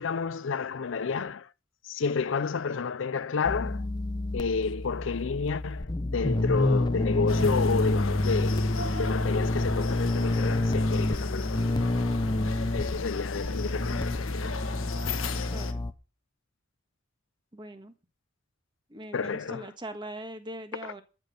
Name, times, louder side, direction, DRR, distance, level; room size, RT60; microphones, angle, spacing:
voice 1, 0.0-1.5 1.8-3.9 4.3-11.8 12.7-14.6 19.1-19.7 20.8-20.9, left 5 dB, 70° left, 0.5 m, -30 dB
sound 1, 3.4-15.9, left 1 dB, 20° left, 0.6 m, -28 dB
sound 2, 7.3-15.7, left 4 dB, 90° left, 1.4 m, -37 dB
voice 2, 15.5-15.8 17.5-17.9 18.9-21.0, right 1 dB, 25° right, 1.5 m, -41 dB
13.0 x 6.1 x 8.3 m
head